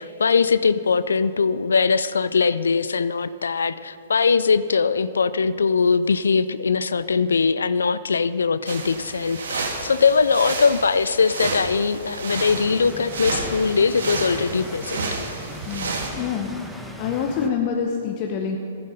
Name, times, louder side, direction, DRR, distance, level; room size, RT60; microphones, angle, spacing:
voice 1, 0.0-15.1, left 5 dB, 75° left, 15 dB, 0.4 m, -21 dB
sound 1, 8.7-16.1, right 3 dB, 70° right, 2.0 m, -31 dB
sound 2, 12.3-17.5, equal, ahead, 1.1 m, -39 dB
voice 2, 15.6-16.5 17.0-18.6, left 7 dB, 35° left, 2 dB, 1.0 m, -26 dB
15.0 x 11.0 x 5.5 m, 2.7 s
figure-of-eight pair, 115°, 0 cm